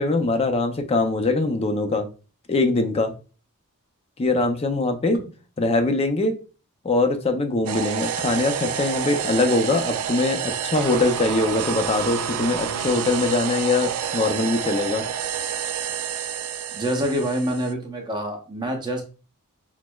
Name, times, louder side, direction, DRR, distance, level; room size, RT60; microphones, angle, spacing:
voice 1, 0.0-2.1 2.5-3.1 4.2-5.2 5.6-6.4 6.8-15.1, left 2 dB, 25° left, 6 dB, 0.4 m, -22 dB
sound 1, 7.7-17.7, right 8 dB, 70° right, 0.4 m, -28 dB
voice 2, 16.7-19.0, equal, 20° right, 2 dB, 0.7 m, -26 dB
6.0 x 2.1 x 2.2 m, 0.35 s
head